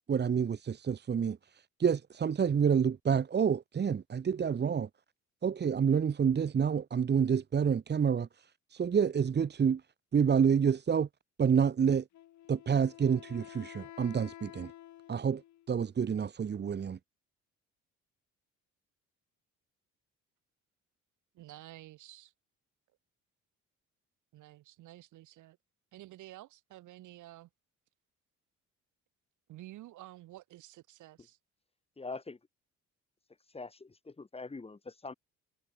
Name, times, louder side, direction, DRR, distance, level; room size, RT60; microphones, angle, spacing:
voice 1, 0.1-1.4 1.8-4.9 5.4-8.3 8.7-9.8 10.1-11.1 11.4-12.0 12.5-14.7 15.1-15.4 15.7-17.0, right 7 dB, 35° right, 1.7 m, -28 dB
Wind instrument woodwind instrument, 12.1-15.7, left 13 dB, 70° left, 7.7 m, -51 dB
voice 2, 21.3-22.3 24.3-25.6 25.9-27.5 29.5-31.4, right 16 dB, 80° right, 7.6 m, -51 dB
voice 3, 32.0-32.4 33.5-35.1, left 3 dB, 20° left, 4.2 m, -43 dB
cardioid pair, 110°, 30 cm